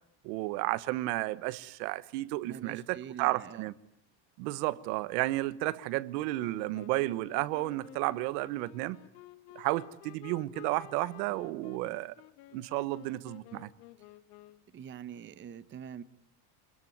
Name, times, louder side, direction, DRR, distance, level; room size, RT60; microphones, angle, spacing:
voice 1, 0.2-3.7 4.4-9.0 9.5-12.1 12.5-13.7, right 18 dB, 75° right, 1.3 m, -32 dB
voice 2, 2.4-3.7 14.7-16.0, right 8 dB, 25° right, 0.9 m, -44 dB
Wind instrument woodwind instrument, 6.4-14.8, left 17 dB, 85° left, 1.7 m, -53 dB
26.5 x 21.5 x 9.5 m
cardioid pair, 150°, 48 cm